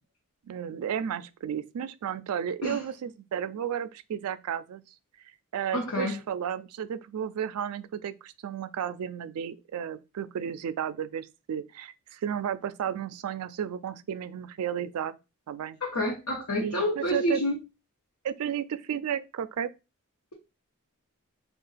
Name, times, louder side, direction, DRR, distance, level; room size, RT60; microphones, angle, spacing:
voice 1, 0.5-4.8 5.5-15.2 15.5-15.8 16.6-17.4 18.2-19.7, right 8 dB, 80° right, 0.3 m, -33 dB
voice 2, 5.7-6.2 15.8-17.6, left 1 dB, 85° left, 0.9 m, -28 dB
3.6 x 2.4 x 4.0 m
head